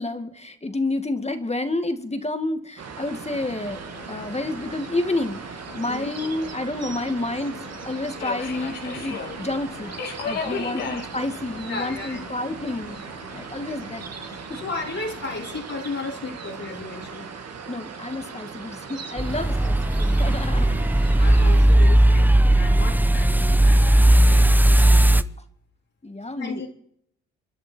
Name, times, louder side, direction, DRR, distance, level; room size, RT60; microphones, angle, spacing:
voice 1, 0.0-3.8 4.1-14.6 17.7-20.7 26.0-26.7, left 2 dB, 20° left, 8 dB, 2.1 m, -30 dB
sound 1, 2.8-21.6, right 5 dB, 50° right, 2.1 m, -38 dB
Subway metro underground, 3.3-15.6, left 5 dB, 85° left, 2.7 m, -39 dB
voice 2, 5.9-6.3 10.5-10.9 11.7-12.3 14.6-17.3 20.5-20.7 21.2-25.3 26.4-26.7, left 3 dB, 55° left, -4 dB, 3.4 m, -34 dB
sound 2, 19.2-25.2, right 1 dB, 5° right, 0.8 m, -17 dB
28.5 x 10.5 x 4.6 m, 0.71 s
hypercardioid pair, 45°, 33 cm